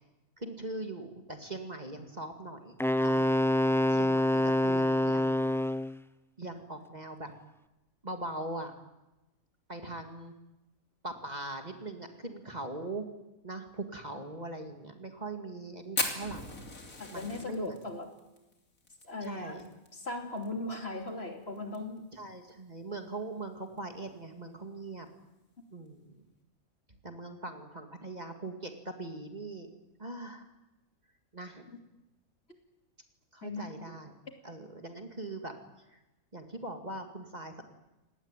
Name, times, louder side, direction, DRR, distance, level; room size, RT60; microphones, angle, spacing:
voice 1, 0.4-3.3 3.9-5.5 6.4-7.3 8.0-8.7 9.7-10.3 11.0-13.1 13.4-16.6 17.1-17.8 19.2-19.6 22.1-25.1 25.7-26.2 26.9-29.7 30.0-30.5 31.3-31.7 33.3-34.1 34.4-35.5 35.9-36.0 36.3-37.6, right 2 dB, 30° right, 5 dB, 2.4 m, -41 dB
Wind instrument woodwind instrument, 2.8-6.0, left 1 dB, 5° left, 0.3 m, -26 dB
Fire, 16.0-20.5 20.7-20.8 21.1-21.2 21.6-22.0 22.5-22.6 23.6-23.8, left 2 dB, 70° left, 3.6 m, -37 dB
voice 2, 17.0-18.1 19.0-19.6 19.9-22.0 32.5-32.6 33.4-33.7, left 2 dB, 45° left, 4 dB, 3.2 m, -38 dB
26.5 x 19.0 x 9.1 m, 0.98 s
omnidirectional pair, 1.5 m